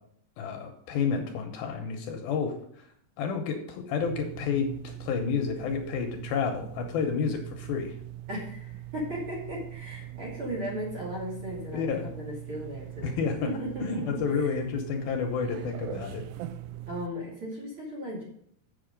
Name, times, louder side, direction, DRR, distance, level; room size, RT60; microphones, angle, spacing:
voice 1, 0.4-2.9 3.2-7.9 11.7-12.1 13.0-16.2, left 6 dB, 75° left, 4 dB, 2.5 m, -30 dB
sound 1, 4.0-17.1, right 14 dB, 85° right, 2.6 m, -41 dB
voice 2, 8.3-14.6 16.9-18.2, equal, 35° right, -3 dB, 2.6 m, -36 dB
7.9 x 6.9 x 5.1 m, 0.67 s
omnidirectional pair, 4.7 m